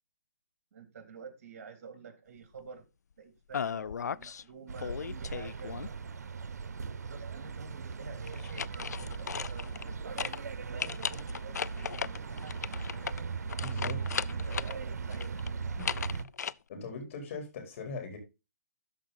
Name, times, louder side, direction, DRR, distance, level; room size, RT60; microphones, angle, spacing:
voice 1, 0.7-2.8 3.2-6.0 7.1-8.9 9.2-12.6 14.3-15.3, right 5 dB, 55° right, 2.9 m, -49 dB
sound 1, 3.5-4.4 4.8-6.1 8.3-9.9 10.2-10.4 10.8-14.8 15.1-16.5, left 7 dB, 85° left, 0.4 m, -36 dB
sound 2, 4.7-16.2, right 5 dB, 85° right, 0.8 m, -38 dB
voice 2, 13.6-14.2 16.7-18.2, left 4 dB, 50° left, 4.1 m, -40 dB
12.5 x 5.0 x 4.1 m
hypercardioid pair, 145°, 9 cm